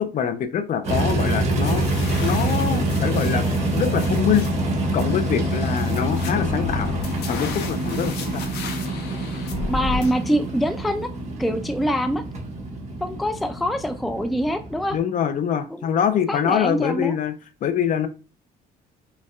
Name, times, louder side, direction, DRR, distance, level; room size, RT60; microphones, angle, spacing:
voice 1, 0.0-1.9 2.2-3.4 3.7-4.5 4.9-6.9 7.3-8.5 14.9-17.3 17.6-18.1, left 8 dB, 50° left, 10 dB, 0.5 m, -24 dB
sound 1, 0.8-15.0, right 1 dB, 40° right, 1.3 m, -26 dB
sound 2, 1.6-10.1, left 4 dB, 75° left, 0.9 m, -34 dB
voice 2, 9.7-11.1 11.4-12.2 13.0-15.0 15.7-15.9 16.3-17.2, equal, ahead, 8 dB, 0.3 m, -24 dB
5.3 x 2.3 x 2.4 m, 0.34 s
cardioid pair, 110°, 17 cm